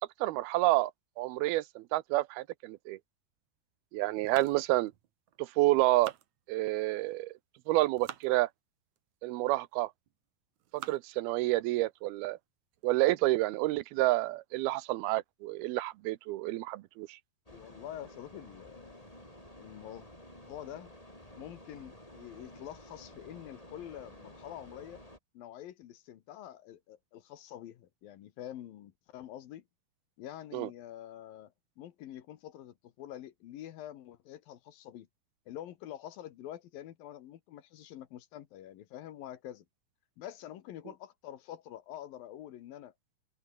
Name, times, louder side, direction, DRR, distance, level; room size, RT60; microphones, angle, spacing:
voice 1, 0.2-0.9 1.2-3.0 3.9-4.9 5.4-6.1 6.5-7.3 7.7-8.5 9.2-9.9 10.7-12.4 12.8-17.2 30.5-30.7, right 18 dB, 85° right, 2.7 m, -29 dB
sound 1, 4.2-5.4 5.8-6.9 7.6-8.3 9.0-9.1 9.8-10.1 10.6-11.2 11.7-11.8 12.2-12.3 12.7-13.0, right 11 dB, 60° right, 2.3 m, -48 dB
voice 2, 17.5-19.1 19.6-20.1 20.5-20.9 21.4-25.0 25.3-29.6 30.2-35.1 35.5-39.6 40.2-42.9, left 12 dB, 70° left, 3.0 m, -46 dB
sound 2, 17.5-25.2, left 1 dB, 10° left, 7.4 m, -52 dB
omnidirectional pair, 4.3 m